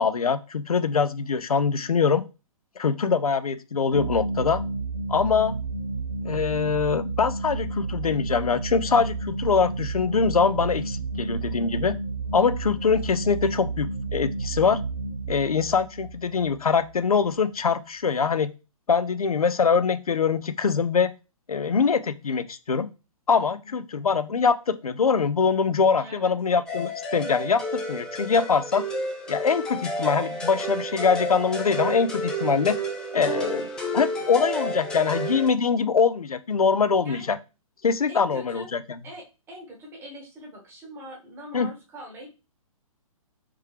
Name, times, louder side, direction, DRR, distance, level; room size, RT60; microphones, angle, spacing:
voice 1, 0.0-2.2 2.8-4.6 5.1-5.6 6.2-11.9 12.3-14.8 15.3-18.5 18.9-21.1 21.5-22.9 23.3-28.8 29.3-32.8 33.1-33.7 33.9-37.4 37.8-39.0 41.5-41.7, left 5 dB, 80° left, 13 dB, 0.4 m, -23 dB
sound 1, 3.9-17.2, right 3 dB, 80° right, 1.2 m, -31 dB
voice 2, 23.4-23.8 26.0-26.3 37.0-37.3 38.1-38.7 39.0-42.3, equal, 15° right, 1 dB, 1.0 m, -43 dB
sound 2, 26.7-35.5, equal, 5° left, 0.3 m, -31 dB
3.3 x 3.3 x 3.2 m, 0.30 s
figure-of-eight pair, 125°, 18 cm